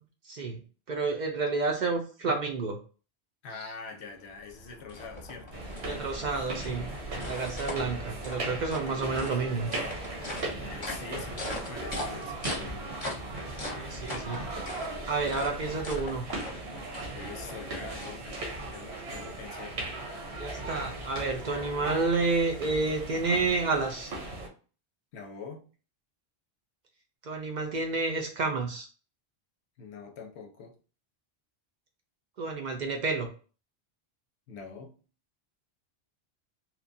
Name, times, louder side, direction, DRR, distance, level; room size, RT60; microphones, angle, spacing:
voice 1, 0.2-0.6 0.9-2.8 3.6-3.7 5.8-6.9 7.2-9.7 13.7-14.4 14.7-16.2 20.4-24.1 27.2-28.9 32.4-33.3, right 3 dB, 55° right, 0.6 m, -30 dB
voice 2, 3.4-5.7 10.6-13.0 17.1-19.8 25.1-25.7 29.8-30.7 34.5-35.0, left 4 dB, 90° left, 0.9 m, -44 dB
sound 1, 4.2-18.7, left 1 dB, 40° left, 0.8 m, -41 dB
sound 2, 5.5-24.5, right 2 dB, 80° right, 1.1 m, -38 dB
2.9 x 2.2 x 2.5 m
omnidirectional pair, 1.1 m